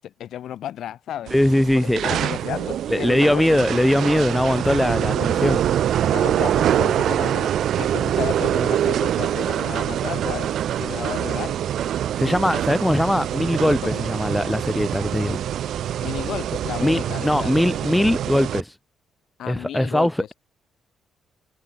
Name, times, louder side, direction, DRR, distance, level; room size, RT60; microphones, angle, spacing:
voice 1, 0.0-1.3 1.7-3.6 4.9-5.6 6.1-7.5 7.8-11.6 13.8-14.1 16.0-17.6 19.4-20.3, left 11 dB, 70° left, 7.9 m, -33 dB
voice 2, 1.3-2.2 2.9-5.6 12.2-15.4 16.8-18.7 19.5-20.3, left 1 dB, 5° left, 2.2 m, -21 dB
sound 1, 1.3-18.6, right 10 dB, 70° right, 1.1 m, -24 dB
cardioid pair, 110°, 0 cm